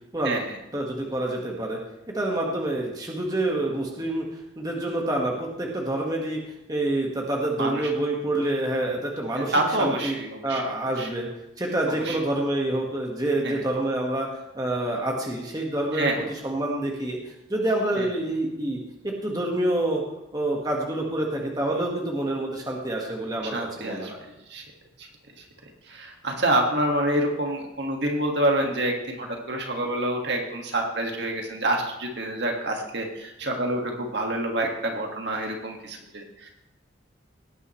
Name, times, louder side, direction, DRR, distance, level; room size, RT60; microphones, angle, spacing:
voice 1, 0.7-1.8 2.1-4.2 4.6-6.4 6.7-10.2 10.4-11.3 11.6-20.0 20.3-24.2, right 1 dB, 20° right, -1 dB, 1.6 m, -27 dB
voice 2, 9.4-10.6 11.0-11.1 11.9-12.2 13.4-13.6 15.9-16.3 18.0-18.1 23.5-24.1 24.5-24.6 25.9-36.5, right 1 dB, 60° right, 2 dB, 1.9 m, -27 dB
17.5 x 9.5 x 3.2 m, 0.89 s
head